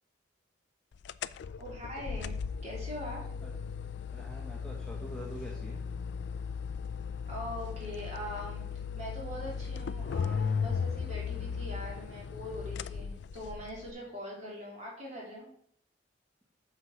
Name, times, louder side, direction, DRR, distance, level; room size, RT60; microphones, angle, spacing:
sound 1, 1.0-13.9, left 6 dB, 60° left, 0.3 m, -36 dB
voice 1, 1.6-2.3 2.6-3.3 7.3-8.6 8.9-15.5, equal, 35° right, -4 dB, 3.2 m, -42 dB
voice 2, 4.1-5.8 11.6-11.7 13.9-14.1, equal, 5° left, -4 dB, 1.3 m, -46 dB
8.0 x 6.3 x 4.6 m, 0.66 s
head